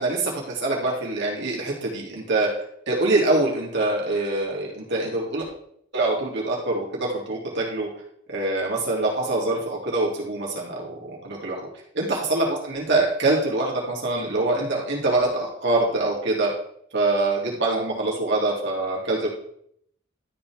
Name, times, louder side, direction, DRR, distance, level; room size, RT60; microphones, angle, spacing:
voice 1, 0.0-2.5 2.9-5.4 5.9-7.9 8.3-11.7 12.0-16.5 16.9-19.3, right 2 dB, 60° right, -3 dB, 3.0 m, -24 dB
12.5 x 5.7 x 3.6 m, 0.69 s
head